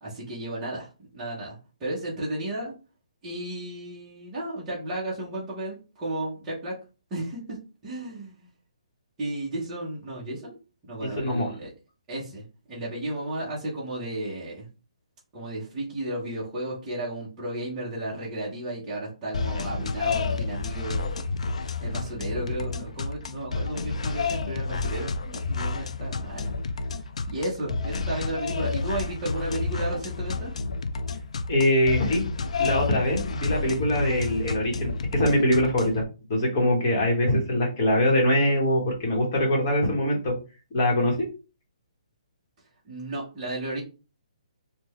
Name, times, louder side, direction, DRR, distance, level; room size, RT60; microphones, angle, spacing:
voice 1, 0.0-2.7 3.2-6.8 7.1-7.6 7.8-8.5 9.2-10.6 10.8-11.7 12.1-14.7 15.3-21.1 21.8-26.5 27.3-30.5 42.8-43.8, right 1 dB, 10° right, -8 dB, 0.8 m, -33 dB
voice 2, 11.1-11.5 31.5-32.2 32.6-36.0 36.3-40.3 40.7-41.3, left 1 dB, 30° left, -1 dB, 1.1 m, -23 dB
sound 1, 19.3-36.0, left 4 dB, 65° left, 0.4 m, -30 dB
3.7 x 2.2 x 3.0 m, 0.32 s
hypercardioid pair, 175°, 4 cm